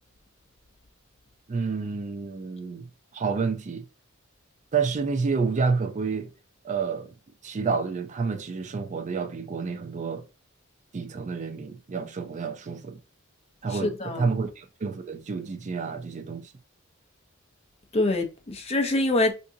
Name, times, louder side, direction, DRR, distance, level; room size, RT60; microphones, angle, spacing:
voice 1, 1.5-3.8 4.7-6.3 6.6-7.1 7.4-10.2 10.9-13.0 13.6-16.5, right 5 dB, 35° right, 0.4 m, -29 dB
voice 2, 13.7-14.4 17.9-19.3, left 2 dB, 30° left, 0.6 m, -25 dB
3.5 x 2.6 x 2.7 m
head